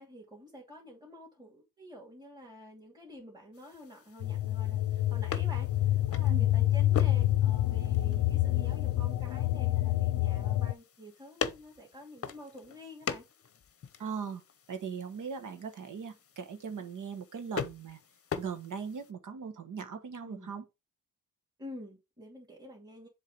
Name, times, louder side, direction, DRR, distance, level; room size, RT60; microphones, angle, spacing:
voice 1, 0.0-13.2 20.2-20.5 21.6-23.1, equal, 10° right, 2.6 m, -49 dB
sound 1, 3.5-19.1, left 6 dB, 45° left, 0.8 m, -43 dB
sound 2, 4.2-10.7, left 14 dB, 85° left, 0.5 m, -27 dB
voice 2, 14.0-14.4 14.7-18.0 18.4-20.6, right 6 dB, 65° right, 1.3 m, -39 dB
7.4 x 3.6 x 5.3 m
wide cardioid pair, 130°, 34 cm